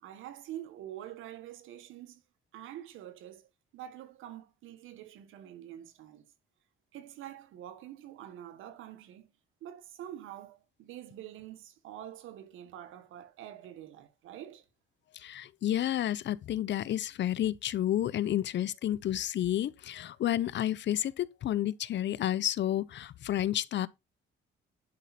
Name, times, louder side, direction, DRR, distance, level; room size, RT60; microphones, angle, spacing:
voice 1, 0.0-2.2 2.5-3.5 3.7-6.2 6.9-9.3 9.6-14.7, right 11 dB, 90° right, 1.7 m, -46 dB
voice 2, 15.1-23.9, left 12 dB, 65° left, 0.8 m, -30 dB
10.5 x 5.6 x 4.3 m
cardioid pair, 90°, 20 cm